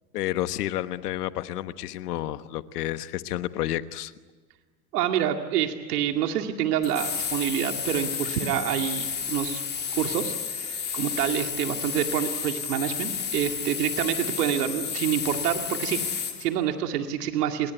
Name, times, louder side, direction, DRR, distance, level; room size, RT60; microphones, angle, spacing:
voice 1, 0.1-4.1, left 14 dB, 80° left, 12 dB, 1.3 m, -30 dB
voice 2, 4.9-9.6 9.9-17.7, right 10 dB, 75° right, 5 dB, 2.4 m, -27 dB
sound 1, 6.8-16.4, left 6 dB, 20° left, 3.1 m, -31 dB
28.5 x 20.5 x 9.2 m, 1.4 s
supercardioid pair, 120°, 46 cm